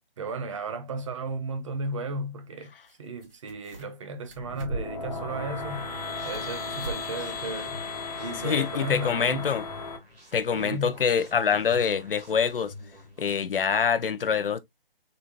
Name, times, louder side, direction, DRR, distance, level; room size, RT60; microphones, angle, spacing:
voice 1, 0.2-2.7 3.0-5.9 6.2-7.8 8.2-9.5 10.5-11.0, right 2 dB, 30° right, 0.6 m, -34 dB
sound 1, 2.8-2.9 3.2-4.0 4.3-5.1 5.6-6.5 6.8-7.0 7.4-7.5 8.0-8.1, right 2 dB, 70° right, 1.9 m, -38 dB
sound 2, 4.3-10.0, left 3 dB, 40° left, 1.0 m, -35 dB
sound 3, 5.3-13.3, left 2 dB, 10° right, 1.5 m, -48 dB
voice 2, 8.4-9.6 10.3-12.7 13.2-14.6, left 6 dB, 65° left, 0.6 m, -25 dB
4.0 x 3.3 x 2.3 m
figure-of-eight pair, 150°, 30 cm